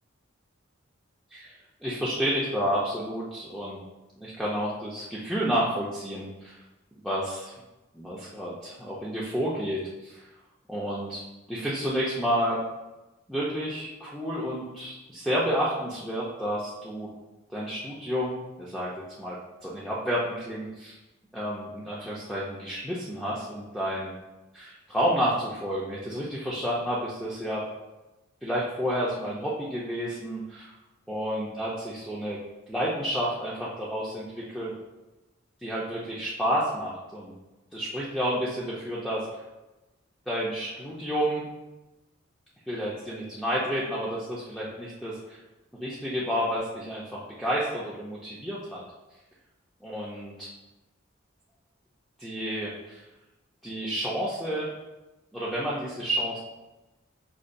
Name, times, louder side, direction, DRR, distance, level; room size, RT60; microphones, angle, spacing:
voice 1, 1.3-3.8 4.2-6.6 7.0-7.5 7.9-10.2 10.7-11.2 11.5-12.6 13.3-17.1 17.5-18.9 19.2-21.0 21.3-24.1 24.5-27.6 28.4-30.7 31.1-32.4 32.7-34.7 35.6-37.3 37.7-39.3 40.3-41.4 42.7-45.4 45.8-48.8 49.8-50.5 52.2-53.0 53.6-54.7 55.3-56.4, equal, ahead, -7 dB, 0.4 m, -30 dB
5.2 x 2.2 x 2.5 m, 1.0 s
head